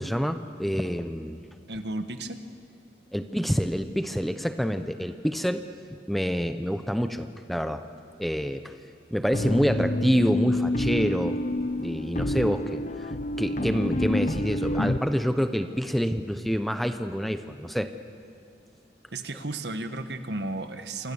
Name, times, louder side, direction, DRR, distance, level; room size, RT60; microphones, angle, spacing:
voice 1, 0.0-1.4 3.1-5.6 6.1-7.9 8.2-8.8 9.1-11.4 11.8-13.1 13.4-17.9, equal, ahead, 9 dB, 0.8 m, -27 dB
voice 2, 1.7-2.4 19.1-21.1, right 2 dB, 70° right, 8 dB, 1.6 m, -33 dB
sound 1, 9.3-15.0, left 1 dB, 40° left, 0.8 m, -28 dB
28.0 x 25.5 x 7.1 m, 2.4 s
head